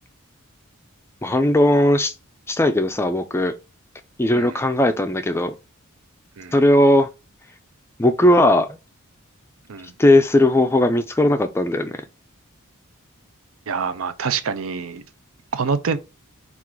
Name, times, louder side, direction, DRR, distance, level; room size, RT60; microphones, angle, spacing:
voice 1, 1.2-2.1 2.5-3.5 4.2-5.5 6.5-7.1 8.0-8.8 10.0-12.0, left 1 dB, 10° left, 0.4 m, -17 dB
voice 2, 13.7-15.0 15.5-16.0, right 5 dB, 70° right, 0.5 m, -26 dB
4.5 x 2.5 x 3.7 m
head